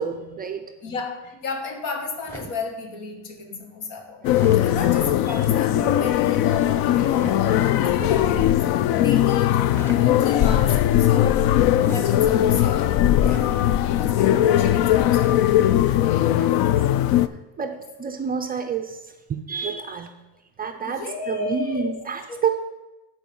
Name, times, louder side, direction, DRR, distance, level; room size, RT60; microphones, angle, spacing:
voice 1, 0.0-0.9 5.3-5.4 7.8-8.1 14.3-14.7 16.3-16.7 17.6-19.0 19.3-20.1 20.6-22.6, right 6 dB, 25° right, 5 dB, 0.3 m, -29 dB
voice 2, 0.8-8.7 9.0-9.6 9.9-11.4 11.7-13.7 14.0-15.4 20.8-22.0 22.3-22.5, left 4 dB, 80° left, 5 dB, 1.8 m, -33 dB
sound 1, 2.2-2.7 4.3-4.7 7.1-7.4 9.6-10.1 11.7-12.1 13.2-13.5 15.1-15.5, equal, 5° left, 0.9 m, -37 dB
sound 2, 4.2-17.3, left 12 dB, 55° left, 0.5 m, -19 dB
12.0 x 4.4 x 5.4 m, 1.1 s
cardioid pair, 150°, 44 cm